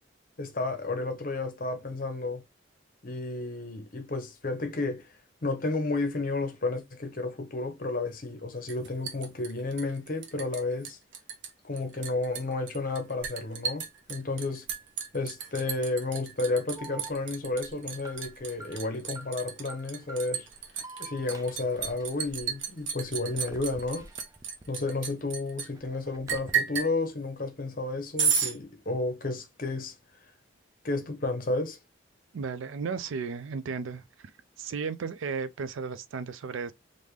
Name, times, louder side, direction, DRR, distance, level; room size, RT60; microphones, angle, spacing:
voice 1, 0.4-2.4 3.0-5.1 5.4-11.0 11.6-14.7 15.1-20.5 21.0-24.1 24.7-29.9 30.8-31.8, left 2 dB, 45° left, 0.8 m, -32 dB
Liquid, 8.7-10.6 10.8-11.5 11.8-25.7 26.3-26.9 28.2-28.5, right 7 dB, 70° right, 0.8 m, -32 dB
Alarm, 16.7-24.9 25.3-26.5, right 2 dB, 15° right, 0.4 m, -49 dB
voice 2, 32.3-34.3 34.6-36.7, right 5 dB, 85° right, 0.4 m, -34 dB
3.5 x 2.6 x 3.0 m
head